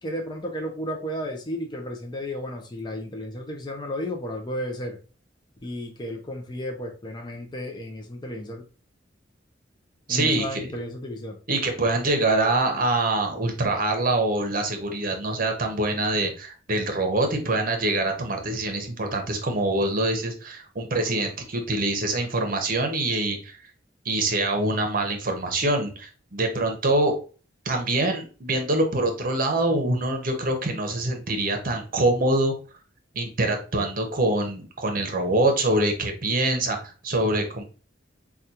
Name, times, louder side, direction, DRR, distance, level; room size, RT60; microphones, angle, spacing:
voice 1, 0.0-5.0 5.6-8.6 10.1-11.4, equal, 25° left, 2 dB, 0.6 m, -33 dB
voice 2, 10.1-10.6 11.5-23.6 24.0-27.1 27.6-32.5 33.1-37.6, right 2 dB, 50° right, 4 dB, 0.8 m, -25 dB
4.9 x 2.3 x 2.8 m, 0.36 s
head